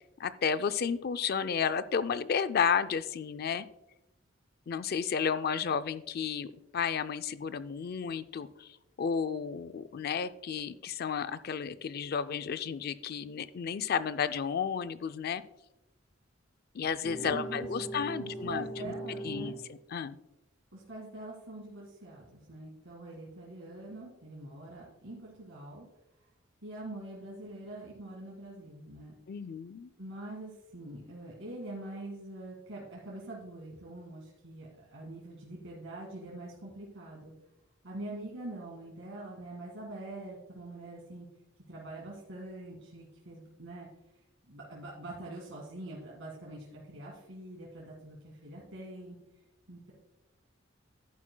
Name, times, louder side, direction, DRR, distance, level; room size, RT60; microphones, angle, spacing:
voice 1, 0.2-3.7 4.7-15.4 16.7-18.9 19.2-20.2 29.3-29.9, left 6 dB, 50° left, 13 dB, 0.4 m, -32 dB
sound 1, 17.0-19.7, right 2 dB, 10° left, 1.1 m, -40 dB
voice 2, 17.2-17.7 18.1-19.6 20.7-25.9 26.6-29.1 30.0-37.3 37.8-41.3 41.7-43.9 44.5-49.2 49.7-49.9, right 2 dB, 70° right, -4 dB, 2.1 m, -44 dB
11.0 x 9.4 x 2.2 m, 0.91 s
head